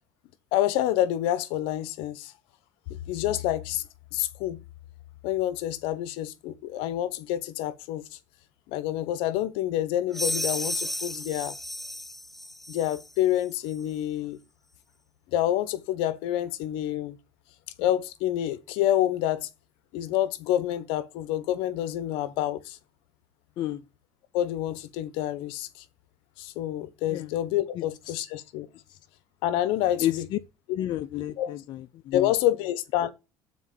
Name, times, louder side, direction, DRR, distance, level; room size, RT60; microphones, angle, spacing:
voice 1, 0.5-2.3 2.9-3.8 4.1-4.6 5.2-8.2 8.7-11.6 12.7-14.4 15.3-17.2 17.8-19.5 19.9-22.8 24.3-25.8 26.4-28.7 29.4-30.3 30.7-30.8 31.4-31.5 32.1-33.1, left 12 dB, 75° left, 0.9 m, -28 dB
sound 1, 10.1-13.1, left 1 dB, ahead, 0.4 m, -33 dB
voice 2, 27.7-28.2 28.9-29.0 30.0-30.4 30.7-32.3, left 13 dB, 55° left, 0.5 m, -31 dB
7.3 x 4.0 x 6.7 m
supercardioid pair, 100°, 9 cm